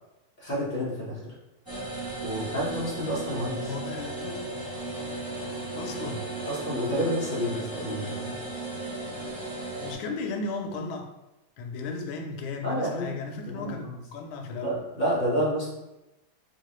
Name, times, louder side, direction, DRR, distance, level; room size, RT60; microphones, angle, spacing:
voice 1, 0.4-1.3 2.2-3.7 6.5-8.3 12.6-13.1 13.5-13.7 14.6-15.7, equal, 30° left, -7 dB, 0.9 m, -29 dB
long drawn out, 1.7-9.9, right 2 dB, 30° right, 0.4 m, -35 dB
voice 2, 3.6-4.5 5.8-6.3 9.8-11.1 11.6-14.8, left 3 dB, 90° left, 4 dB, 1.4 m, -35 dB
3.5 x 3.1 x 3.0 m, 0.98 s
omnidirectional pair, 2.2 m